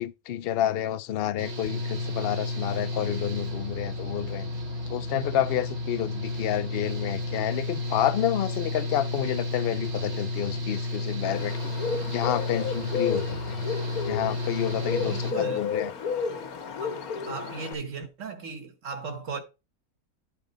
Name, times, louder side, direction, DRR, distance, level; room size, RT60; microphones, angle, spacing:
voice 1, 0.0-4.5 4.9-11.7 12.1-13.6 14.0-15.9, left 11 dB, 65° left, 0.6 m, -29 dB
Engine / Mechanical fan, 1.4-15.3, left 2 dB, 80° right, 2.3 m, -32 dB
Bird, 11.2-17.7, left 6 dB, 85° left, 1.5 m, -32 dB
voice 2, 15.0-15.7 16.8-17.0 17.3-19.4, right 5 dB, 60° right, 1.5 m, -36 dB
10.0 x 3.9 x 5.3 m
omnidirectional pair, 1.5 m